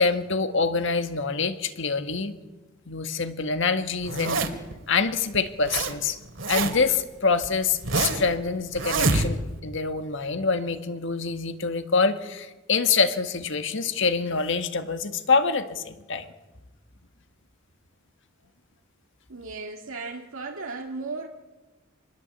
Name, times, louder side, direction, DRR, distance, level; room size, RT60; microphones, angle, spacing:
voice 1, 0.0-2.4 2.9-4.4 4.9-6.2 6.5-16.3, left 4 dB, 65° left, 9 dB, 1.8 m, -25 dB
Zipper (clothing), 4.0-4.7 5.3-5.9 6.2-6.9 7.4-8.3 8.8-9.6, right 3 dB, 65° right, 2.7 m, -26 dB
voice 2, 19.3-21.3, right 3 dB, 80° right, 1 dB, 2.0 m, -35 dB
27.5 x 21.0 x 8.3 m, 1.2 s
head